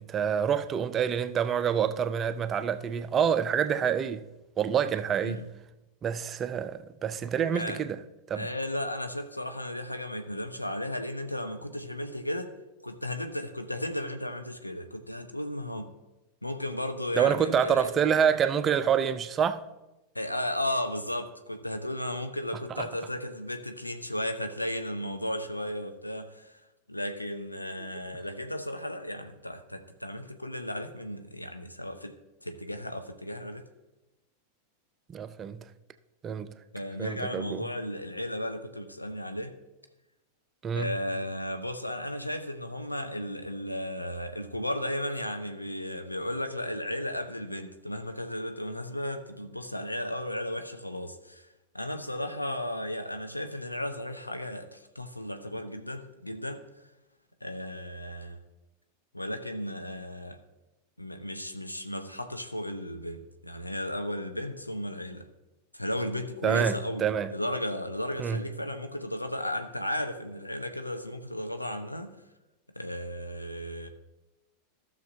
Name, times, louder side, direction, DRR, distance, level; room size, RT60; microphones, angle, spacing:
voice 1, 0.0-4.3 4.6-5.4 6.0-8.0 8.3-8.5 17.2-19.6 22.7-22.9 35.1-35.7 36.2-36.5 37.0-37.6 40.6-40.9 66.4-67.3 68.2-68.4, right 8 dB, 25° right, 0.5 m, -27 dB
voice 2, 7.5-7.8 8.3-12.5 12.8-15.9 16.4-17.9 20.1-26.6 26.9-32.1 32.4-33.7 36.7-39.5 40.7-51.5 51.7-56.6 57.4-58.4 59.1-60.4 61.0-65.3 65.7-72.1 72.8-73.9, left 1 dB, 85° left, 0.6 m, -35 dB
15.0 x 6.5 x 2.7 m
figure-of-eight pair, 90°, 0 cm